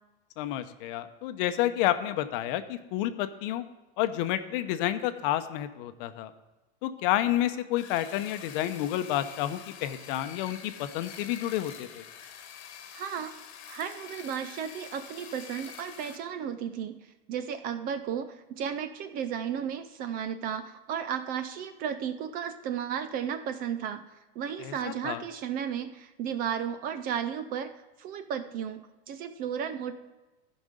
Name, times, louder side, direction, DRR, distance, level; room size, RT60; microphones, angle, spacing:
voice 1, 0.4-3.6 4.0-6.3 6.8-12.0 24.6-25.2, left 13 dB, 55° left, 11 dB, 0.8 m, -30 dB
sound 1, 7.8-16.2, left 8 dB, 90° left, 1.4 m, -46 dB
voice 2, 12.9-13.3 13.7-27.7 28.0-29.9, right 8 dB, 30° right, 11 dB, 0.3 m, -34 dB
14.5 x 5.2 x 5.1 m, 1.1 s
supercardioid pair, 155°, 32 cm